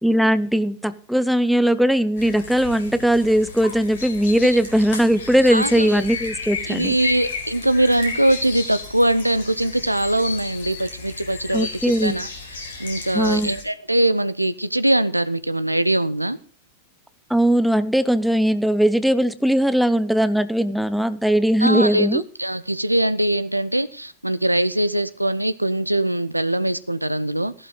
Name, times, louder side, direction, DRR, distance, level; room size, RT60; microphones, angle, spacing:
voice 1, 0.0-7.0 11.5-12.2 13.1-13.5 17.3-22.2, equal, ahead, 0.7 m, -19 dB
sound 1, 2.2-13.6, left 4 dB, 60° left, 4.4 m, -34 dB
voice 2, 5.5-6.0 6.7-12.3 12.8-16.4 21.6-27.5, right 1 dB, 85° right, 0.7 m, -22 dB
15.0 x 12.0 x 3.9 m
figure-of-eight pair, 90°, 0 cm